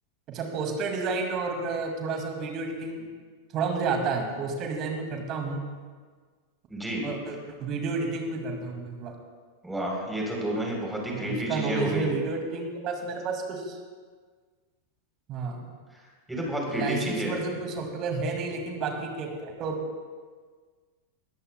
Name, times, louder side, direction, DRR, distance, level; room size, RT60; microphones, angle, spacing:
voice 1, 0.3-3.1 3.5-5.6 7.0-9.1 11.1-13.8 15.3-15.7 16.7-19.8, right 4 dB, 35° right, 3 dB, 2.2 m, -31 dB
voice 2, 6.7-7.1 9.6-12.1 16.3-17.4, equal, 5° right, -2 dB, 3.6 m, -30 dB
20.5 x 13.5 x 2.3 m, 1.5 s
figure-of-eight pair, 90°, 0 cm